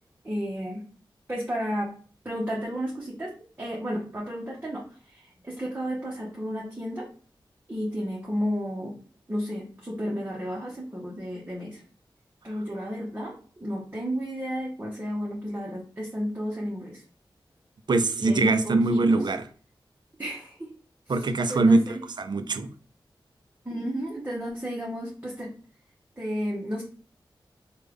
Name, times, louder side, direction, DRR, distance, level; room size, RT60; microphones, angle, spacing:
voice 1, 0.2-0.8 1.3-1.9 2.2-3.3 3.6-4.8 5.1-7.0 7.7-8.9 9.3-11.8 12.4-13.3 13.6-17.0 18.2-19.2 20.2-20.6 21.5-22.0 23.6-25.5 26.2-26.8, equal, 20° right, -4 dB, 0.8 m, -32 dB
voice 2, 17.9-19.5 21.1-22.7, right 3 dB, 60° right, 10 dB, 0.4 m, -23 dB
3.4 x 2.2 x 3.4 m, 0.42 s
wide cardioid pair, 70°, 9 cm